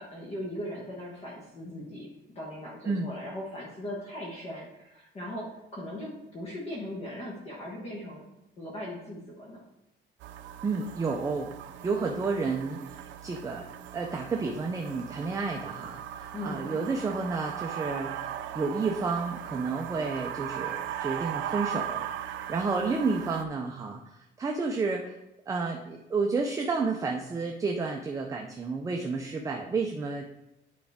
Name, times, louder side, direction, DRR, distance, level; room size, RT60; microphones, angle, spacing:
voice 1, 0.0-2.1 2.3-8.2 8.6-9.6 16.3-16.7, left 1 dB, 30° left, -3 dB, 1.3 m, -39 dB
sound 1, 10.2-23.4, right 10 dB, 75° right, 0.5 m, -38 dB
voice 2, 10.6-11.5 11.8-13.7 13.9-25.1 25.5-30.3, right 4 dB, 15° right, 1 dB, 0.5 m, -31 dB
9.4 x 4.9 x 3.5 m, 0.89 s
cardioid pair, 170°, 20 cm